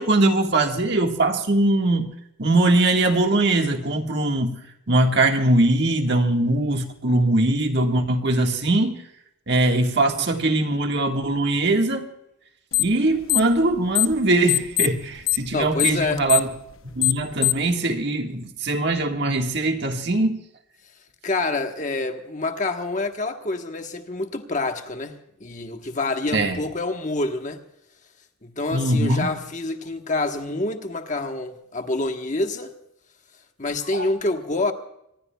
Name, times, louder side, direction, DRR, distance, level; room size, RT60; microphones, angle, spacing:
voice 1, 0.0-2.1 2.4-4.6 4.9-8.9 9.5-12.1 12.8-16.5 16.9-20.3 26.3-26.6 28.7-29.3 33.9-34.1, right 2 dB, 55° right, 1.6 m, -21 dB
sound 1, 12.7-13.0 13.2-14.2 14.5-17.7, left 19 dB, 75° left, 0.8 m, -22 dB
voice 2, 15.5-16.2 21.2-27.6 28.4-32.7 33.6-34.7, left 2 dB, 35° left, 1.1 m, -27 dB
25.0 x 20.5 x 2.3 m
head